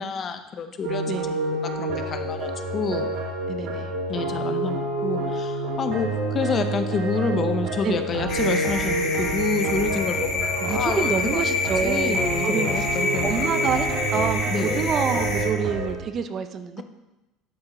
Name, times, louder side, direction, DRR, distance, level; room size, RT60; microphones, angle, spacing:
voice 1, 0.0-3.1 4.1-11.4 11.8-13.5 14.5-14.9, left 5 dB, 35° left, 9 dB, 0.6 m, -29 dB
robot-dance, 0.8-15.9, right 2 dB, 65° right, 2.2 m, -28 dB
voice 2, 1.1-1.4 3.5-3.9 7.8-8.2 10.6-12.9 13.2-16.8, right 6 dB, 35° right, 10 dB, 0.5 m, -27 dB
sound 1, 8.3-15.4, left 3 dB, 55° left, 2.1 m, -28 dB
11.5 x 4.5 x 3.8 m, 1.0 s
cardioid pair, 135°, 0 cm